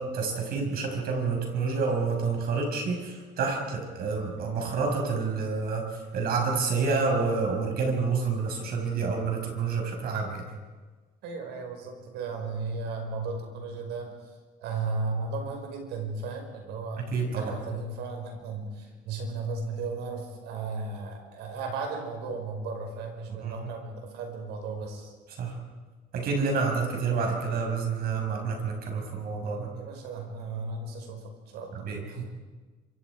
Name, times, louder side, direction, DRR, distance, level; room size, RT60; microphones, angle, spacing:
voice 1, 0.0-10.4 17.0-17.6 23.3-23.5 25.3-25.6 26.1-29.7 31.7-32.2, right 4 dB, 65° right, 2 dB, 6.0 m, -28 dB
voice 2, 11.2-14.1 14.6-25.1 29.7-31.9, right 3 dB, 85° right, 3 dB, 5.3 m, -35 dB
26.5 x 25.0 x 5.0 m, 1.3 s
cardioid pair, 110°, 17 cm